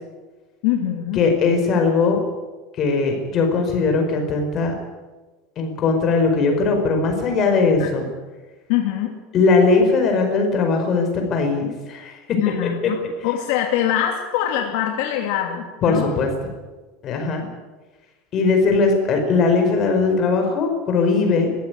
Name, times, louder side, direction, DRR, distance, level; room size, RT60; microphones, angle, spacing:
voice 1, 0.6-1.2 7.8-7.9 8.7-9.2 12.4-16.1 18.7-18.8, left 11 dB, 65° left, 2 dB, 2.7 m, -23 dB
voice 2, 1.1-2.2 2.8-4.7 5.6-8.1 9.3-12.2 12.6-12.9 15.8-16.3 17.0-17.5 18.3-21.5, left 4 dB, 30° left, 4 dB, 5.1 m, -19 dB
22.0 x 15.5 x 9.4 m, 1.3 s
cardioid pair, 165°, 0 cm